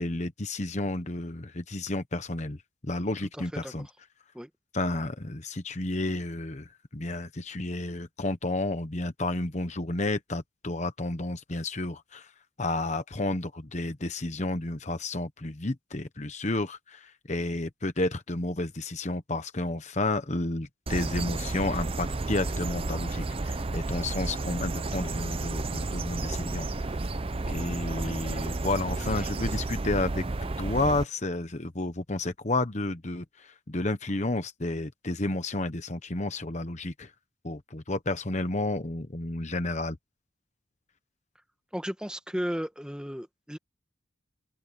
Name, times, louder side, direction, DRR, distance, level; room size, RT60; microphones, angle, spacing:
voice 1, 0.0-2.6 2.8-3.9 4.7-12.3 12.6-27.0 27.5-30.2 30.6-37.1 37.4-40.0, left 2 dB, 35° left, 1.1 m, -31 dB
sound 1, 20.9-31.0, right 2 dB, 30° right, 0.5 m, -32 dB
voice 2, 41.7-43.6, equal, 5° right, 1.4 m, -34 dB
open air
head